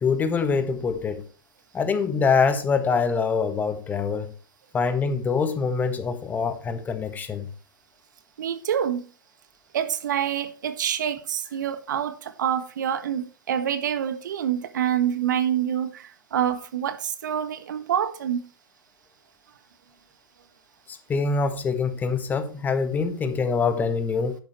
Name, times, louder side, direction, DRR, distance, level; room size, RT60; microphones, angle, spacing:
voice 1, 0.0-1.2 1.7-4.3 4.7-7.5 21.1-24.4, left 5 dB, 15° left, 1.5 m, -24 dB
voice 2, 8.4-9.1 9.7-18.5, right 9 dB, 55° right, 1.6 m, -27 dB
11.5 x 10.0 x 3.1 m
figure-of-eight pair, 110°, 12 cm